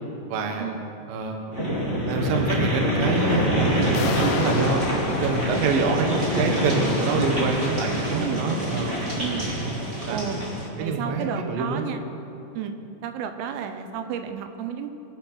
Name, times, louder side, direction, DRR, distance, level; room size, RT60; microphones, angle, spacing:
voice 1, 0.3-0.7 1.1-1.5 2.1-4.8 5.2-9.0 10.1-10.2 10.8-11.8, right 3 dB, 65° right, 3 dB, 2.4 m, -26 dB
sound 1, 1.5-10.7, equal, 25° right, 1.6 m, -25 dB
sound 2, 3.9-6.8, left 8 dB, 80° left, 2.8 m, -34 dB
voice 2, 8.0-8.5 9.2-9.5 10.1-10.4 10.8-12.0 12.5-12.7 13.0-14.9, right 9 dB, 80° right, 7 dB, 3.3 m, -32 dB
24.5 x 9.9 x 5.8 m, 2.9 s
omnidirectional pair, 6.0 m